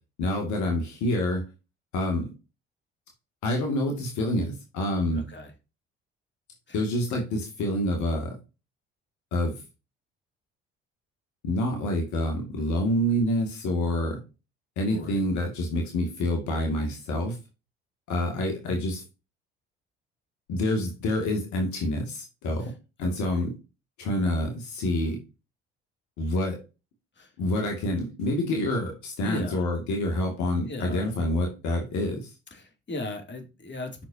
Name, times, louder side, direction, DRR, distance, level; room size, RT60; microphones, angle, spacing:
voice 1, 0.2-1.4 1.9-2.3 3.4-5.3 6.7-8.3 9.3-9.5 11.4-14.2 14.8-17.3 18.1-19.0 20.5-22.7 23.0-23.5 24.0-25.2 26.2-26.6 27.4-32.3, left 1 dB, 70° left, 2 dB, 2.4 m, -27 dB
voice 2, 5.1-5.5 6.7-6.8 14.8-15.2 22.6-22.7 23.0-23.4 27.2-27.3 29.2-29.7 30.7-31.1 32.5-34.0, left 1 dB, 35° left, 5 dB, 2.9 m, -37 dB
8.5 x 6.3 x 2.8 m, 0.28 s
hypercardioid pair, 55°, 30 cm